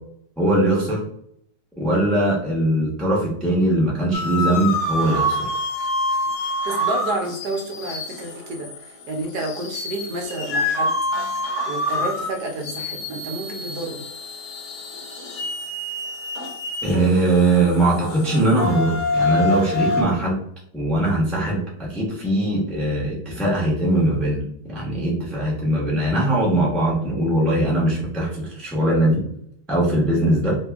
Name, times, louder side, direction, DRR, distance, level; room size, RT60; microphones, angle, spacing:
voice 1, 0.4-1.0 1.8-5.5 16.8-20.4 20.7-24.4 24.7-29.2 29.7-30.6, right 1 dB, ahead, -5 dB, 0.8 m, -21 dB
sound 1, 4.1-20.0, left 1 dB, 60° left, 0.8 m, -27 dB
voice 2, 6.5-11.0 11.6-14.0, right 2 dB, 70° right, 2 dB, 1.2 m, -30 dB
2.9 x 2.7 x 3.4 m, 0.69 s
omnidirectional pair, 1.8 m